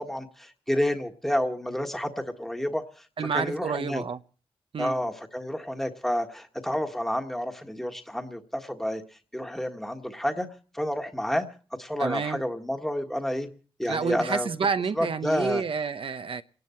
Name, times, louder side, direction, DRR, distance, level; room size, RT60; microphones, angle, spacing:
voice 1, 0.0-3.0 3.3-4.0 4.8-9.0 9.3-10.5 10.7-11.5 11.8-13.5 13.8-14.5 15.0-15.6, equal, 5° left, 1.5 m, -29 dB
voice 2, 3.2-4.2 4.7-5.0 12.0-12.4 13.9-16.4, right 5 dB, 70° right, 0.8 m, -29 dB
29.0 x 11.0 x 4.4 m
cardioid pair, 75°, 9 cm